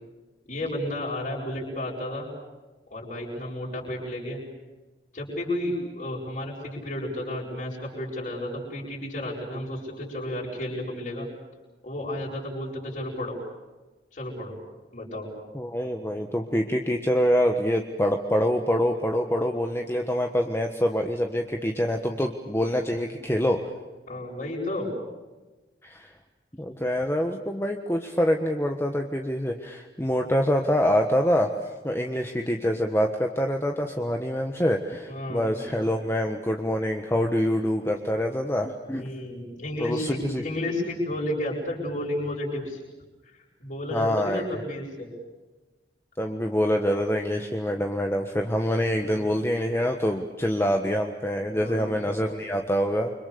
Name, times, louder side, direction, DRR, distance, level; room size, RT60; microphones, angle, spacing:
voice 1, 0.5-2.3 2.9-4.4 5.1-11.3 11.8-13.4 14.1-14.5 14.9-15.3 24.1-24.9 35.1-35.6 39.0-42.8 43.2-45.1 49.0-49.3 51.5-52.0, left 1 dB, 45° left, -6 dB, 7.5 m, -32 dB
voice 2, 15.5-23.6 25.8-26.1 26.5-39.1 39.8-40.4 43.9-44.6 46.2-53.1, equal, 15° left, 3 dB, 1.4 m, -25 dB
29.0 x 26.0 x 6.9 m, 1.2 s
head